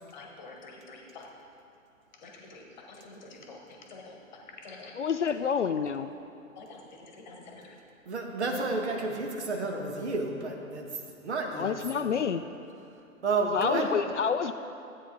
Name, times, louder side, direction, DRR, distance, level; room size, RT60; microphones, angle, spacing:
voice 1, 0.1-1.3 2.2-5.0 6.6-7.7, left 3 dB, 35° left, 1 dB, 1.3 m, -48 dB
voice 2, 4.9-6.1 11.5-12.4 13.4-14.5, left 7 dB, 60° left, 10 dB, 0.5 m, -28 dB
voice 3, 8.1-10.9 11.2-12.1 13.2-14.0, right 3 dB, 55° right, 2 dB, 1.5 m, -31 dB
13.5 x 8.6 x 3.8 m, 2.6 s
figure-of-eight pair, 125°, 41 cm